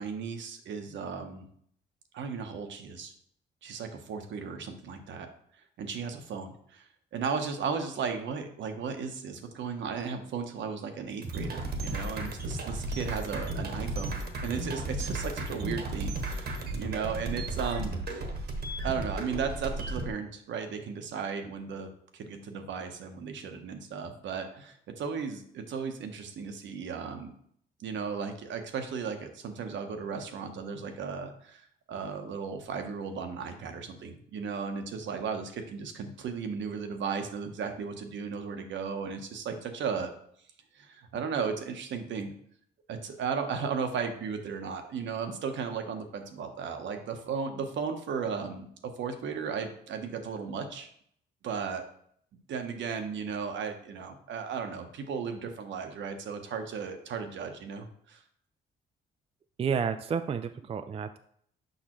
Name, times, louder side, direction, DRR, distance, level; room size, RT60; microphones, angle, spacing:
voice 1, 0.0-1.5 2.1-3.1 3.6-5.3 5.8-6.8 7.1-18.2 18.8-27.4 27.8-31.6 31.9-40.1 40.7-42.3 42.9-50.9 51.4-51.8 52.5-58.2, right 6 dB, 70° right, 6 dB, 0.9 m, -35 dB
sound 1, 11.2-20.1, right 2 dB, 55° right, 1.1 m, -34 dB
voice 2, 59.6-61.2, right 6 dB, 30° right, 9 dB, 0.3 m, -30 dB
6.5 x 5.3 x 3.0 m, 0.66 s
cardioid pair, 90°, 20 cm